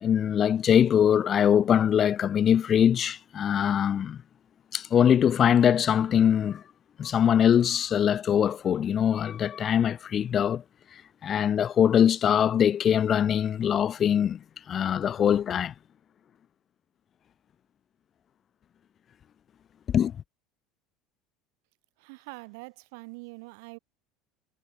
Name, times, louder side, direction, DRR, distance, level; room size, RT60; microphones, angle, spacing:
voice 1, 0.0-4.2 4.7-6.6 7.0-10.6 11.2-14.4 14.7-15.7 19.9-20.1, left 9 dB, 25° left, 0.9 m, -22 dB
voice 2, 22.0-23.8, right 30 dB, 70° right, 5.9 m, -44 dB
cardioid pair, 170°, 0 cm